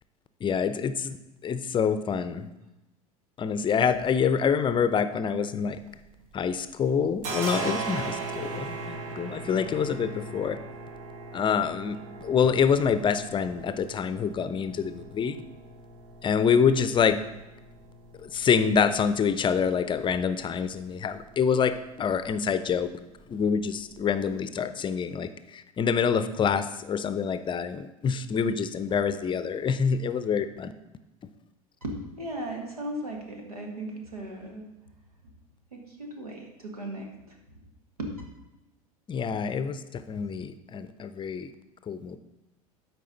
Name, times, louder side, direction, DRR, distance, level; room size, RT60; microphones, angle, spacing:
voice 1, 0.4-1.2 1.4-2.5 3.4-5.8 6.3-10.6 11.3-15.4 16.2-17.2 18.2-22.9 23.3-30.7 39.1-41.5 41.9-42.2, left 6 dB, 25° left, 11 dB, 0.6 m, -26 dB
sound 1, 5.6-6.6 6.8-24.3, right 3 dB, 60° right, 1.3 m, -40 dB
voice 2, 31.8-34.7 35.7-37.4 38.0-38.1, right 1 dB, 90° right, 2 dB, 1.6 m, -37 dB
12.5 x 4.7 x 3.9 m, 0.96 s
figure-of-eight pair, 80°, 19 cm